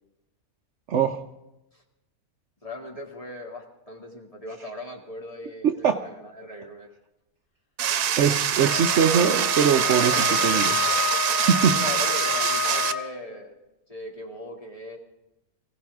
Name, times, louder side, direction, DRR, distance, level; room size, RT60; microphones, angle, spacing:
voice 1, 0.9-1.2 5.6-6.0 8.2-10.8 11.3-11.8, right 7 dB, 60° right, 6 dB, 0.9 m, -22 dB
voice 2, 2.6-6.9 11.6-13.6 13.9-15.0, left 1 dB, 25° left, -1 dB, 2.4 m, -39 dB
sound 1, 7.8-12.9, right 9 dB, 90° right, 1.2 m, -25 dB
Wind instrument woodwind instrument, 8.6-13.1, left 7 dB, 65° left, 3.1 m, -28 dB
24.0 x 16.0 x 3.5 m, 0.95 s
omnidirectional pair, 1.6 m